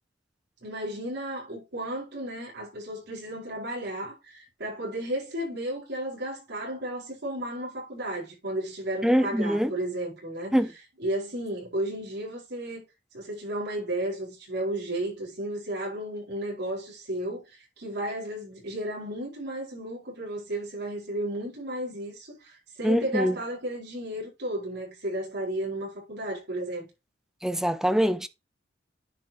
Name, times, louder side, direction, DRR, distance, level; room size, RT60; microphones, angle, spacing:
voice 1, 0.6-10.5 11.0-12.8 13.1-17.4 17.8-26.9, right 1 dB, 60° right, 4.8 m, -33 dB
voice 2, 9.0-9.7 10.5-10.7 22.8-23.4 27.4-28.3, equal, 5° right, 0.5 m, -24 dB
10.0 x 5.3 x 2.9 m
head